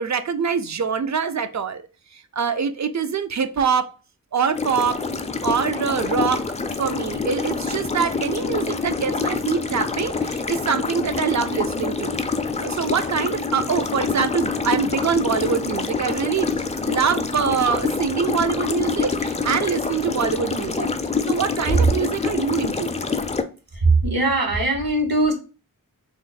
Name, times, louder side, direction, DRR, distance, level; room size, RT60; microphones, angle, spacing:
voice 1, 0.0-1.8 2.1-3.9 4.3-5.0 5.4-12.2 12.6-20.9 21.3-22.9, right 6 dB, 50° right, 0.4 m, -24 dB
sound 1, 4.6-23.4, left 4 dB, 20° left, 0.3 m, -26 dB
voice 2, 23.7-25.3, right 2 dB, 75° right, 1.1 m, -20 dB
3.1 x 2.0 x 3.9 m
wide cardioid pair, 65°, 36 cm